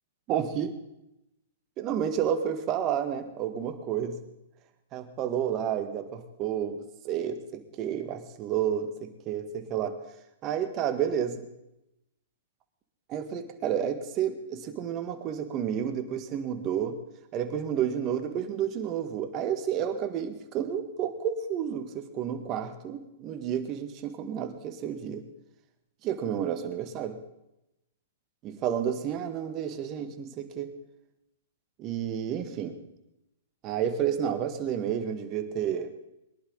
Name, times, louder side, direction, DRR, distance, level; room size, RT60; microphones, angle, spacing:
voice 1, 0.3-0.7 1.8-4.2 4.9-10.0 10.4-11.5 13.1-17.0 17.3-25.2 26.0-27.2 28.4-30.7 31.8-32.8 33.6-35.9, right 9 dB, 35° right, 8 dB, 1.8 m, -30 dB
22.5 x 11.5 x 4.0 m, 0.86 s
hypercardioid pair, 135°, 0 cm